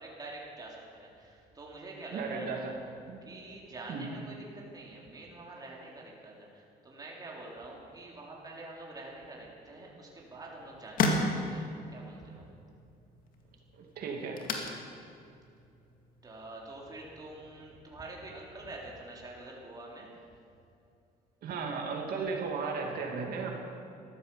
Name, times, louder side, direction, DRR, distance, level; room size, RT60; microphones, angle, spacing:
voice 1, 0.0-2.7 3.2-12.5 16.2-20.1, right 2 dB, 20° right, -3 dB, 3.5 m, -46 dB
voice 2, 2.1-2.7 3.1-3.2 3.9-4.1 13.8-14.4 21.4-23.5, right 4 dB, 65° right, 1 dB, 2.6 m, -35 dB
sound 1, 10.1-17.4, left 2 dB, 55° left, 2.2 m, -36 dB
14.0 x 12.5 x 7.1 m, 2.6 s
cardioid pair, 110°, 17 cm